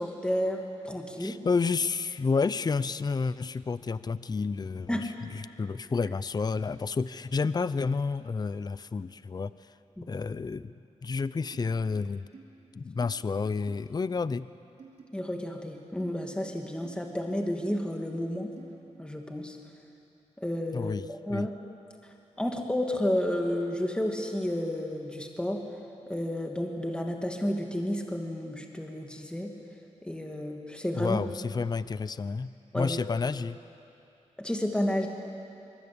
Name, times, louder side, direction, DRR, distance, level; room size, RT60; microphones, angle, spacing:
voice 1, 0.0-1.4 4.9-5.1 10.0-10.1 15.1-18.5 19.0-19.6 20.4-21.5 22.4-25.6 26.1-29.5 30.0-31.2 32.7-33.0 34.4-35.1, left 1 dB, 10° left, 2 dB, 2.5 m, -31 dB
voice 2, 1.2-9.5 10.1-10.7 11.0-12.2 12.7-14.5 20.7-21.5 30.9-33.6, left 4 dB, 35° left, 16 dB, 0.6 m, -30 dB
sound 1, 11.5-11.7 12.3-12.4 13.0-13.1 13.7-13.9 14.8-15.0 16.0-16.2 16.8-17.0 17.7-17.8 18.6-18.7, right 5 dB, 70° right, 3.3 m, -50 dB
24.0 x 23.5 x 8.7 m, 2.7 s
wide cardioid pair, 90°, 12 cm